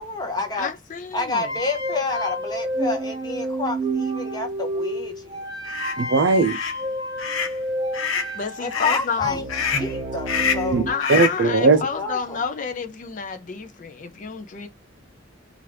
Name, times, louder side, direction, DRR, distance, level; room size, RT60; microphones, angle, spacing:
voice 1, 0.0-0.7 1.1-5.4 8.6-11.0 11.6-12.4, left 3 dB, 20° left, 0.8 m, -29 dB
voice 2, 0.5-1.5 8.3-9.4 10.9-14.7, left 5 dB, 40° left, 0.4 m, -30 dB
sound 1, 1.3-10.9, right 1 dB, 20° right, 0.6 m, -29 dB
sound 2, 5.7-5.9 6.4-6.8 7.2-7.6 7.9-8.3 8.7-9.1 9.5-9.9 10.3-10.7 11.0-11.4, left 7 dB, 85° left, 0.7 m, -26 dB
voice 3, 6.0-6.6 10.7-10.8 11.1-11.8, right 3 dB, 60° right, 0.4 m, -18 dB
3.2 x 2.5 x 2.9 m
head